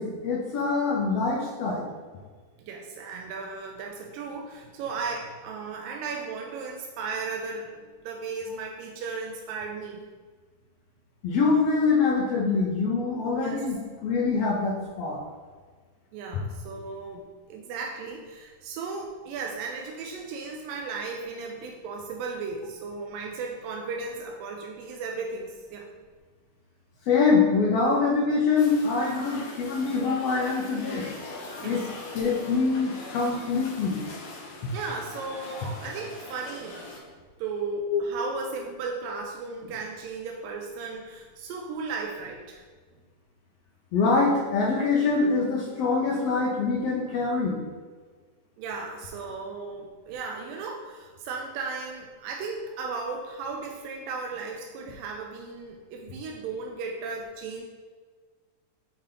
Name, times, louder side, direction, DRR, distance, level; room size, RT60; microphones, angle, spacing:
voice 1, 0.0-1.8 11.2-15.2 27.1-31.1 31.6-31.8 32.1-34.0 37.9-38.0 43.9-47.6, left 4 dB, 80° left, -3 dB, 1.4 m, -24 dB
voice 2, 2.6-7.8 8.0-10.0 13.3-13.7 16.1-25.9 31.6-31.9 34.7-36.8 37.4-42.6 48.6-57.6, right 4 dB, 90° right, 1 dB, 2.3 m, -35 dB
sound 1, 28.6-37.0, left 2 dB, 60° left, 1.8 m, -41 dB
6.9 x 4.3 x 3.8 m, 1.5 s
omnidirectional pair, 3.9 m